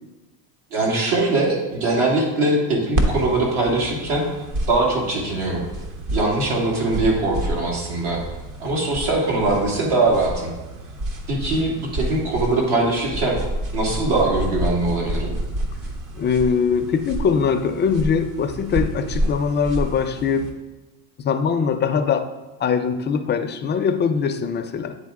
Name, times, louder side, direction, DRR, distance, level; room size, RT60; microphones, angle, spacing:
voice 1, 0.7-4.2 4.7-5.6 6.1-8.2 8.6-10.5 11.3-13.4 13.7-15.3, right 2 dB, 75° right, -2 dB, 2.3 m, -21 dB
sound 1, 2.9-20.5, right 1 dB, 50° right, 1.1 m, -29 dB
voice 2, 16.2-20.5 21.2-22.3 22.6-25.0, left 6 dB, 30° left, 9 dB, 0.4 m, -22 dB
9.6 x 3.9 x 3.6 m, 1.1 s
cardioid pair, 125°, 40 cm